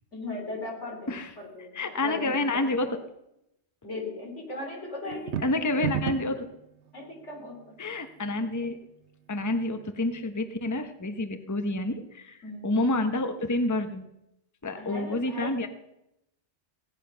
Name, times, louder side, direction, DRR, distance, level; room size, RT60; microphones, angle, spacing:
voice 1, 0.1-2.7 3.8-5.8 6.9-7.8 12.4-12.7 14.8-15.5, left 2 dB, 85° left, 0 dB, 3.7 m, -38 dB
voice 2, 1.7-3.0 5.1-6.5 7.8-8.8 9.3-14.0 14.6-15.7, left 2 dB, 15° left, 8 dB, 0.9 m, -29 dB
sound 1, 5.1-6.4, right 9 dB, 75° right, 0.9 m, -30 dB
17.5 x 9.9 x 5.6 m, 0.84 s
omnidirectional pair, 1.2 m